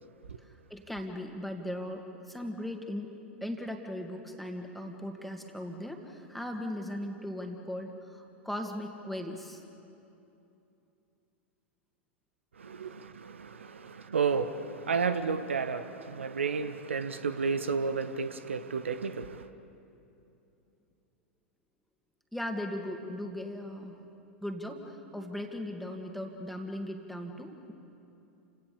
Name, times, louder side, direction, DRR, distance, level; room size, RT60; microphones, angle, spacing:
voice 1, 0.7-3.1 3.4-9.6 22.3-24.0 24.4-27.7, left 1 dB, ahead, 2.3 m, -38 dB
voice 2, 12.6-19.5, right 5 dB, 70° right, 0.9 m, -32 dB
29.5 x 17.5 x 7.1 m
figure-of-eight pair, 90°, 7 cm